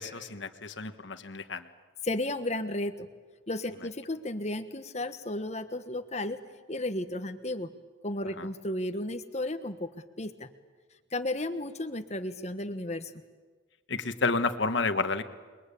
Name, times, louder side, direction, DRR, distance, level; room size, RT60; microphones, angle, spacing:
voice 1, 0.0-1.6 8.4-8.5 13.9-15.2, left 3 dB, 65° left, 9 dB, 1.5 m, -30 dB
voice 2, 2.0-3.1 3.5-6.4 6.7-7.7 8.0-9.9 10.2-10.5 11.1-13.1, left 1 dB, 35° left, 9 dB, 1.3 m, -33 dB
29.0 x 22.0 x 8.5 m, 1.4 s
head